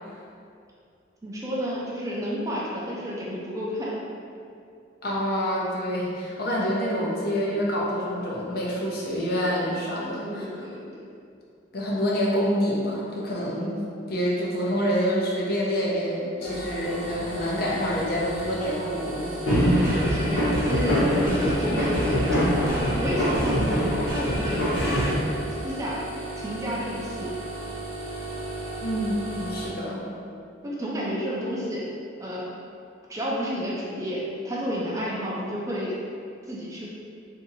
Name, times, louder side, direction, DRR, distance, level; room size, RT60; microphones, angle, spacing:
voice 1, 1.2-3.9 10.1-10.8 20.0-21.1 21.4-22.2 22.7-25.2 25.6-26.0 26.4-27.3 30.6-31.8 32.2-32.5 33.1-36.0 36.5-36.9, equal, 15° right, -5 dB, 0.4 m, -31 dB
voice 2, 5.0-10.5 11.7-13.8 14.1-19.3 28.8-30.0, equal, 55° left, -5 dB, 0.6 m, -27 dB
sound 1, 16.4-29.7, right 2 dB, 70° right, 0.9 m, -35 dB
sound 2, 19.5-25.1, equal, 75° left, 1.1 m, -23 dB
2.7 x 2.6 x 3.9 m, 2.4 s
head